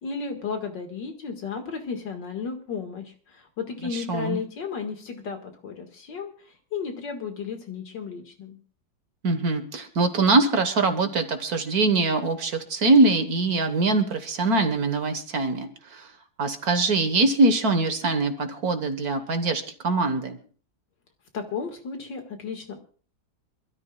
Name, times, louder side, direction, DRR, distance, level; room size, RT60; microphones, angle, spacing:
voice 1, 0.0-8.6 21.3-22.8, left 5 dB, 65° left, 5 dB, 2.5 m, -34 dB
voice 2, 3.9-4.4 9.2-16.1 16.4-20.4, right 3 dB, 55° right, 8 dB, 1.7 m, -23 dB
27.0 x 13.0 x 2.3 m, 0.40 s
omnidirectional pair, 2.1 m